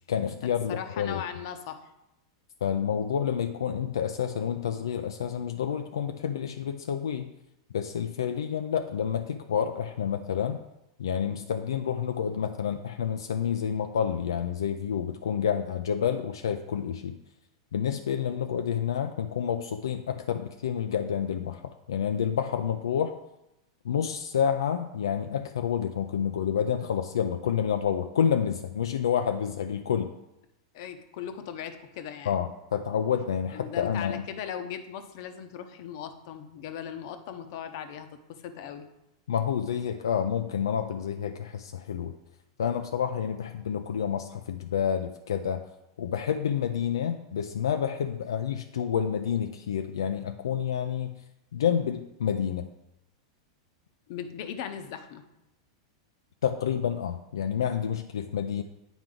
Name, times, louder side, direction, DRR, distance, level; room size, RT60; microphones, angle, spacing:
voice 1, 0.1-1.2 2.6-7.3 7.7-10.6 11.0-17.2 17.7-23.2 23.8-30.1 32.3-34.3 39.3-42.1 42.6-45.7 46.0-51.2 51.5-52.7 56.4-58.6, left 8 dB, 90° left, 6 dB, 0.4 m, -29 dB
voice 2, 0.7-1.9 30.7-32.4 33.5-38.9 54.1-55.2, left 8 dB, 60° left, 8 dB, 0.8 m, -38 dB
9.0 x 4.5 x 3.8 m, 0.88 s
hypercardioid pair, 120°, 2 cm